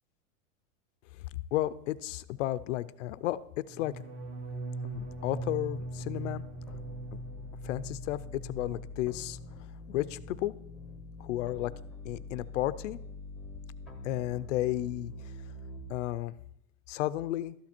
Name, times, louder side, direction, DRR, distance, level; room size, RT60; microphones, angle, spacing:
voice 1, 1.1-4.0 4.8-6.4 7.1-7.2 7.6-9.4 9.9-10.5 11.2-11.7 12.0-13.0 14.0-15.1 15.9-16.3 16.9-17.6, left 15 dB, 60° left, 16 dB, 0.6 m, -33 dB
sound 1, 3.7-9.6 9.9-10.4 10.7-11.1, right 2 dB, 40° right, 2.0 m, -41 dB
sound 2, 4.9-15.9, left 2 dB, ahead, 1.2 m, -45 dB
13.0 x 8.7 x 4.4 m, 0.75 s
supercardioid pair, 165°, 41 cm